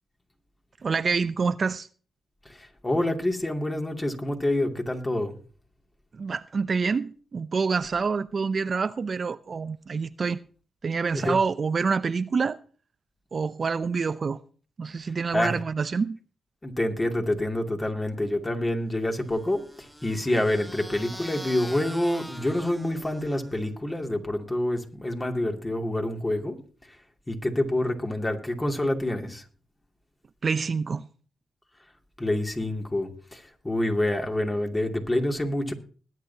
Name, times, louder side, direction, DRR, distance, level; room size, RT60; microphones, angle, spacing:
voice 1, 0.8-1.9 6.1-10.4 10.8-12.6 13.3-14.4 14.8-16.2 30.4-31.1, right 5 dB, 50° right, 0.5 m, -27 dB
voice 2, 2.4-5.3 11.1-11.3 15.3-15.6 16.6-26.6 27.3-29.4 32.2-35.7, left 1 dB, 20° left, 2.5 m, -27 dB
sound 1, 19.2-23.7, equal, ahead, 1.3 m, -43 dB
20.5 x 9.2 x 2.8 m
supercardioid pair, 55°, 0 cm